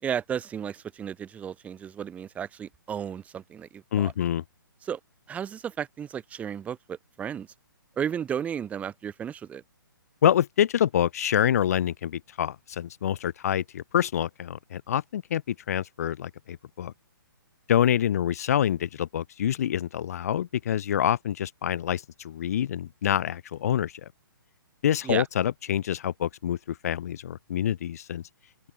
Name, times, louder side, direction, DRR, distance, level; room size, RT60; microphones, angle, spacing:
voice 1, 0.0-4.1 4.8-5.0 5.3-7.5 8.0-9.6 25.0-25.3, right 8 dB, 10° right, 3.9 m, -33 dB
voice 2, 3.9-4.4 10.2-16.9 17.7-23.9 24.8-28.2, left 10 dB, 45° left, 2.5 m, -26 dB
open air
figure-of-eight pair, 130°, 12 cm